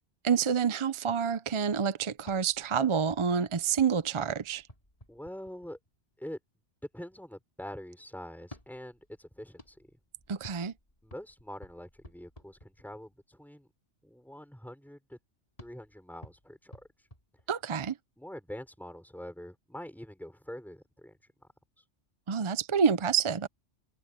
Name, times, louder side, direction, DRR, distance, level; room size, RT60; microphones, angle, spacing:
voice 1, 0.2-4.6 10.3-10.7 17.5-18.0 22.3-23.5, right 6 dB, 40° right, 0.4 m, -28 dB
sound 1, 2.2-6.0 8.4-13.2 15.6-18.0, left 1 dB, 30° left, 4.6 m, -55 dB
voice 2, 5.1-5.8 6.2-6.4 6.9-9.8 11.0-13.7 14.0-15.2 15.6-16.8 18.2-21.2, equal, ahead, 5.4 m, -45 dB
omnidirectional pair, 1.2 m